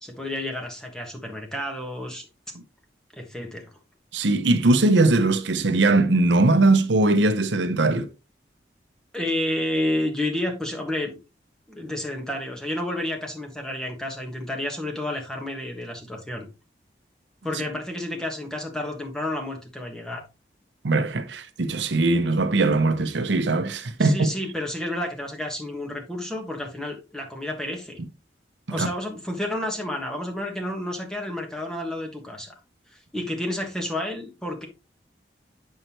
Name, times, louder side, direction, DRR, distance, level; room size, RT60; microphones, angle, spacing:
voice 1, 0.0-2.2 3.1-3.7 9.1-11.1 11.7-16.5 17.4-20.2 24.0-28.0 28.7-32.5 32.9-34.7, left 1 dB, 5° left, 1.5 m, -30 dB
voice 2, 4.1-8.1 20.8-24.3 28.7-28.9, right 2 dB, 85° right, 0.7 m, -20 dB
7.9 x 5.6 x 3.0 m
head